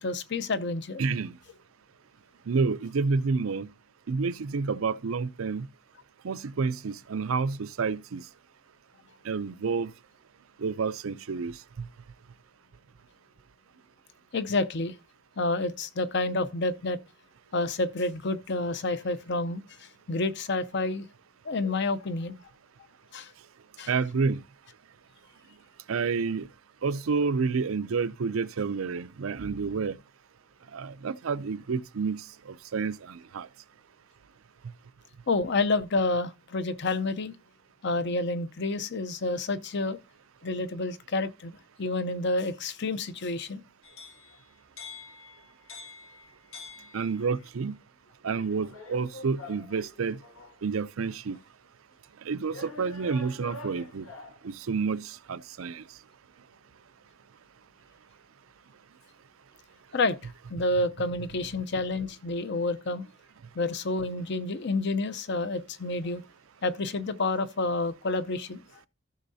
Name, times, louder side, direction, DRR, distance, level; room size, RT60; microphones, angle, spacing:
voice 1, 0.0-1.0 14.3-15.0 15.4-17.0 17.5-21.1 21.4-22.4 23.1-23.3 23.8-23.9 35.3-37.3 37.8-40.0 40.4-43.6 59.9-63.0 63.5-66.2 66.6-68.6, left 2 dB, 55° left, 0.7 m, -29 dB
voice 2, 1.0-1.4 2.5-3.7 4.1-5.7 6.2-8.2 9.2-9.9 10.6-11.9 23.9-24.4 25.9-26.5 26.8-30.0 30.7-33.5 46.9-47.8 48.2-50.2 50.6-51.4 52.2-54.1 54.4-55.8, right 4 dB, 90° right, 0.5 m, -29 dB
sound 1, 43.8-47.5 48.3-50.6 51.3-51.4 52.5-54.5, left 2 dB, 90° left, 1.9 m, -46 dB
14.5 x 6.3 x 2.7 m
head